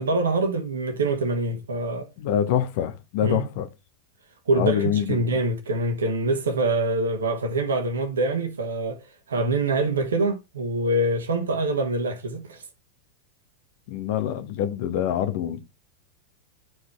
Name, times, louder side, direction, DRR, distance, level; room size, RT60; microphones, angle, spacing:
voice 1, 0.0-2.1 3.2-3.5 4.5-12.6, right 2 dB, 70° right, 1.3 m, -25 dB
voice 2, 2.2-3.7 4.5-5.4 13.9-15.6, left 10 dB, 50° left, 1.2 m, -25 dB
11.0 x 4.6 x 3.3 m
figure-of-eight pair, 90°, 0 cm